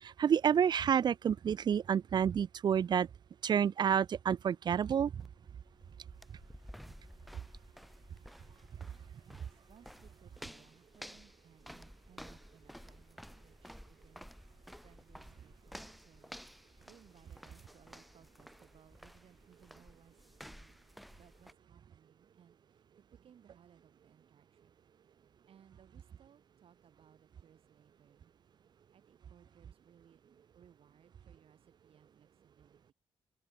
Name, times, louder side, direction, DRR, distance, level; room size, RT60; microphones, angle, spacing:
voice 1, 0.0-3.1 3.4-5.1, right 8 dB, 45° right, 0.4 m, -29 dB
sound 1, 5.2-21.5, equal, ahead, 1.4 m, -53 dB
voice 2, 9.5-14.3 14.8-16.3 16.8-20.8 21.2-22.8 23.1-24.7 25.5-28.3 28.9-30.2 30.5-32.9, right 9 dB, 65° right, 6.6 m, -64 dB
open air
cardioid pair, 105°, 10 cm